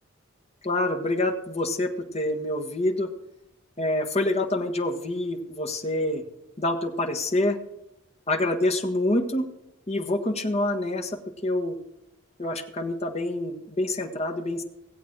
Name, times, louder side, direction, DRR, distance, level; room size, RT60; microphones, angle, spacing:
voice 1, 0.6-3.1 3.8-6.2 6.6-7.6 8.3-9.4 9.9-11.7 12.4-14.6, left 1 dB, 35° left, 4 dB, 1.4 m, -26 dB
17.0 x 8.2 x 6.1 m, 0.88 s
head